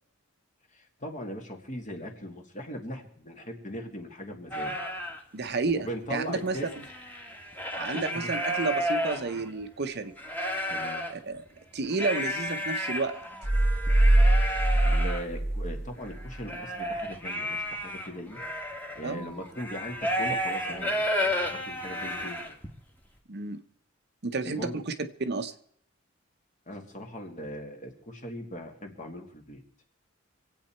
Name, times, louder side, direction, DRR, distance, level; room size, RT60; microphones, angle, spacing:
voice 1, 0.7-4.7 5.7-6.7 7.9-8.3 10.7-11.0 14.8-18.4 18.9-22.6 24.4-24.8 26.7-29.6, equal, 35° left, 3 dB, 2.0 m, -39 dB
sound 1, 4.5-5.2 5.7-5.8 6.0-9.6 10.1-11.1 11.9-22.8, equal, 10° left, 1.5 m, -32 dB
voice 2, 5.3-6.6 7.8-10.1 11.2-11.4 11.7-13.1 19.0-19.3 23.3-23.6 24.2-24.9 25.2-25.5, right 3 dB, 50° right, 9 dB, 0.8 m, -31 dB
sound 2, 13.4-16.4, right 1 dB, 15° right, 0.8 m, -23 dB
25.5 x 8.7 x 4.5 m, 0.65 s
head